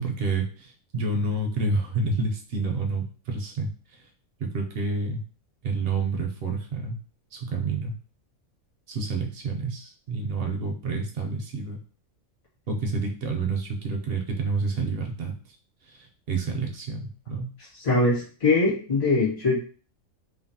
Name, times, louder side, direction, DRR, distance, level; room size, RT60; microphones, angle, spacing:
voice 1, 0.0-4.0 4.4-5.2 5.6-7.0 7.3-7.9 8.9-11.8 12.7-15.3 15.9-17.5, right 3 dB, 65° right, 3 dB, 0.6 m, -29 dB
voice 2, 17.8-19.6, left 3 dB, 65° left, -6 dB, 1.7 m, -22 dB
3.2 x 2.1 x 2.6 m, 0.39 s
omnidirectional pair, 1.4 m